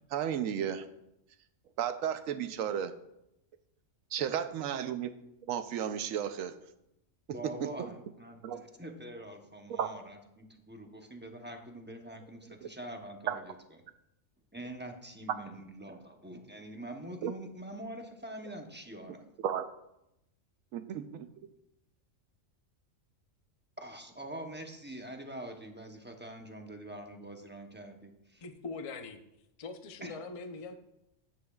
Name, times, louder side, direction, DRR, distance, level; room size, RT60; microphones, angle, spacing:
voice 1, 0.1-0.9 1.8-2.9 4.1-5.1 5.5-6.5 7.4-7.7 8.4-8.6 9.8-9.9 13.3-13.4 17.2-17.3 19.4-19.6 20.7-21.3, right 9 dB, 90° right, 10 dB, 1.1 m, -33 dB
voice 2, 7.3-13.5 14.5-19.3 23.8-28.4 30.0-30.2, right 1 dB, 10° right, 3 dB, 0.7 m, -45 dB
voice 3, 28.4-29.2 29.6-30.7, left 4 dB, 40° left, 6 dB, 0.5 m, -42 dB
11.5 x 9.5 x 2.3 m, 0.86 s
omnidirectional pair, 1.4 m